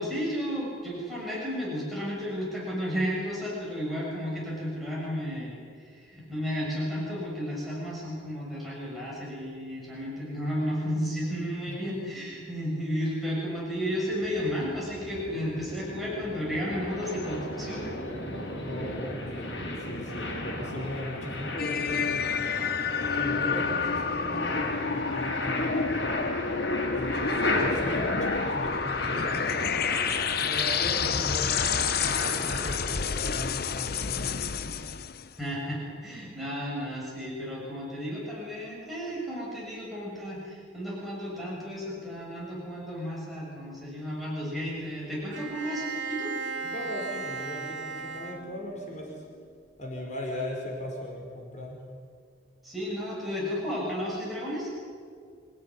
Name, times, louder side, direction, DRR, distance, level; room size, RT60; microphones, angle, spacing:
voice 1, 0.0-5.6 5.9-17.9 35.4-46.3 52.6-54.7, equal, ahead, -6 dB, 7.0 m, -33 dB
voice 2, 11.7-12.2 18.7-22.5 23.2-26.1 26.9-29.5 30.4-34.2 46.6-49.2 49.8-51.8, equal, 40° left, -1 dB, 5.2 m, -38 dB
sound 1, 13.9-32.8, left 2 dB, 80° left, 5.4 m, -34 dB
sound 2, 21.6-35.3, left 6 dB, 55° left, 0.9 m, -29 dB
Bowed string instrument, 45.3-49.0, right 4 dB, 75° right, 2.5 m, -36 dB
26.5 x 17.5 x 9.8 m, 2.1 s
head